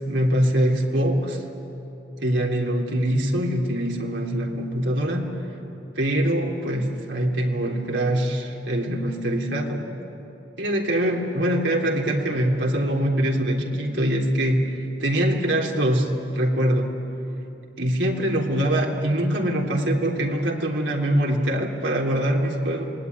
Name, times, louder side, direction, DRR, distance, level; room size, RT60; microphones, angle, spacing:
voice 1, 0.1-1.4 2.2-5.3 5.9-9.8 10.6-17.0 17.8-22.9, right 1 dB, 85° right, 0 dB, 3.4 m, -23 dB
27.5 x 20.5 x 9.8 m, 2.9 s
head